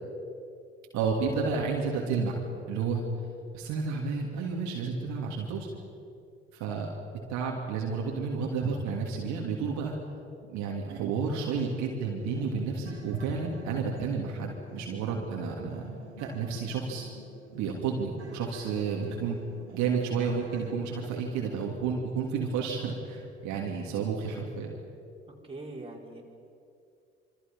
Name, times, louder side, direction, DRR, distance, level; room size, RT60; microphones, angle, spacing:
voice 1, 0.9-3.0 3.5-5.7 6.6-6.9 7.3-9.9 10.5-17.1 17.5-19.4 19.7-24.8, right 5 dB, 60° right, -1 dB, 3.3 m, -31 dB
voice 2, 4.8-5.2 25.4-26.2, right 2 dB, 15° right, -2 dB, 5.6 m, -43 dB
sound 1, 11.7-20.7, right 4 dB, 90° right, 1.6 m, -48 dB
27.5 x 25.0 x 5.7 m, 2.4 s
figure-of-eight pair, 55°, 33 cm